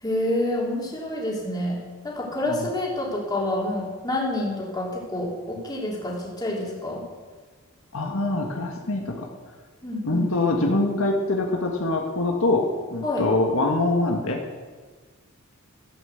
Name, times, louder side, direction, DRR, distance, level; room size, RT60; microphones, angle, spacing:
voice 1, 0.0-1.8 2.0-7.0 9.8-10.3 13.0-13.3, left 1 dB, 20° left, -3 dB, 3.2 m, -28 dB
voice 2, 7.9-9.3 10.0-14.4, left 2 dB, 70° left, 1 dB, 1.7 m, -24 dB
13.5 x 9.2 x 7.9 m, 1.4 s
head